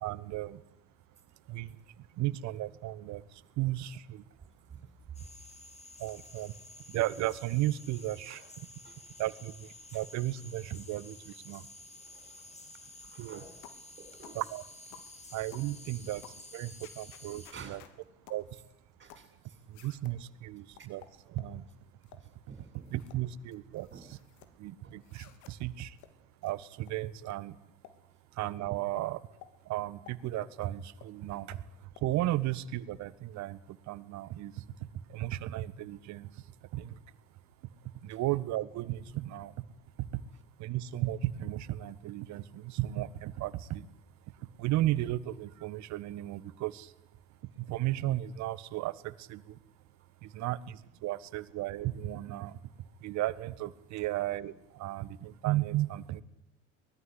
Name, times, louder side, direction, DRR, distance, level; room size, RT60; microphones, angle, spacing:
voice 1, 0.0-0.6 1.5-4.2 6.0-6.5 6.9-8.4 9.2-11.7 13.2-13.4 14.3-14.6 15.3-16.2 16.5-17.8 18.3-18.6 19.7-21.0 21.3-21.7 22.9-24.2 24.6-26.0 26.4-27.6 28.3-29.3 29.6-34.6 35.1-36.4 36.7-37.0 38.0-39.6 40.0-40.2 40.6-43.9 44.4-46.9 47.4-49.6 50.2-52.6 53.0-56.2, right 15 dB, 50° right, 18 dB, 1.5 m, -35 dB
sound 1, 5.1-17.5, left 2 dB, 20° left, 4.4 m, -51 dB
voice 2, 8.8-9.2 9.9-10.0 12.0-13.6 14.0-14.4 17.5-17.8 19.0-19.6 20.8-20.9 22.2-22.9 23.9-24.1 24.8-25.0 38.1-38.2 50.0-50.1 54.0-54.1, right 6 dB, 30° right, 8 dB, 7.2 m, -51 dB
sound 2, 13.6-13.9 14.2-14.4 14.9-15.1 15.5-15.7 16.2-16.4 16.8-17.9 18.3-18.5 19.1-19.3 19.7-20.2 20.8-21.5 22.0-22.3 22.7-23.2 23.5-24.5 25.0-25.5 26.0-26.1 26.4-26.6 26.8-26.9 27.3-27.4 27.8-28.0 28.4-28.5 29.0-29.1 29.4-29.5 30.1-30.6 31.0-31.1 31.5-31.6 32.0-32.1, left 11 dB, 55° left, 2.9 m, -54 dB
24.0 x 20.5 x 8.4 m, 0.83 s
figure-of-eight pair, 70°, 37 cm